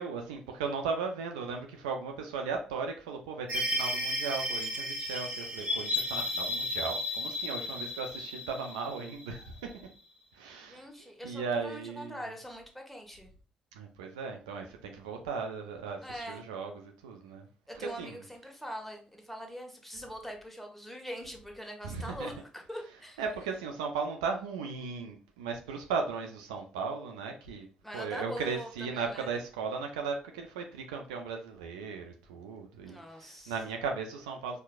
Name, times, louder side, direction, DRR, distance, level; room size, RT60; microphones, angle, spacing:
voice 1, 0.0-9.7 10.3-10.9 11.2-12.2 13.7-17.4 17.8-18.2 21.8-22.3 23.2-27.7 27.9-34.6, right 5 dB, 80° right, 0.4 m, -36 dB
sound 1, 3.5-9.7, left 1 dB, 35° right, 1.5 m, -34 dB
voice 2, 10.6-13.3 16.0-16.4 17.7-23.2 27.8-29.3 32.8-33.6, equal, 5° left, 1.0 m, -43 dB
4.5 x 2.2 x 2.3 m
hypercardioid pair, 45°, 4 cm